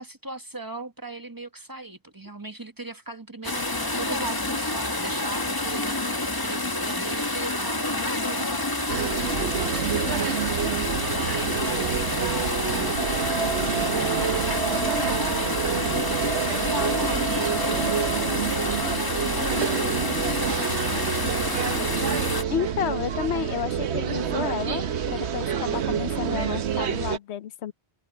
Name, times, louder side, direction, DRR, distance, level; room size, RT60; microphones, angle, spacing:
voice 1, 0.0-10.7 11.1-13.1 13.8-22.2, right 2 dB, 20° right, 1.2 m, -39 dB
sound 1, 3.4-22.4, left 2 dB, 20° left, 1.4 m, -28 dB
sound 2, 8.9-27.2, right 8 dB, 90° right, 1.1 m, -28 dB
sound 3, 13.0-19.0, right 5 dB, 65° right, 1.4 m, -33 dB
voice 2, 22.5-24.8 25.1-27.7, left 9 dB, 85° left, 1.0 m, -31 dB
omnidirectional pair, 1.1 m